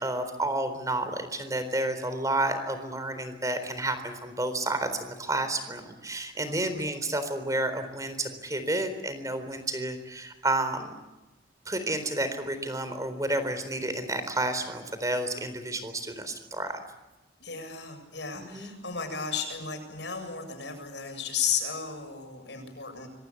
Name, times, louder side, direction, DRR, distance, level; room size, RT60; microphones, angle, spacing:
voice 1, 0.0-4.9 5.2-10.9 11.7-16.8 18.4-18.7, right 2 dB, 20° right, 10 dB, 4.0 m, -30 dB
voice 2, 6.4-6.9 17.4-23.1, left 6 dB, 75° left, 5 dB, 7.7 m, -34 dB
25.5 x 24.5 x 8.5 m, 1.0 s
head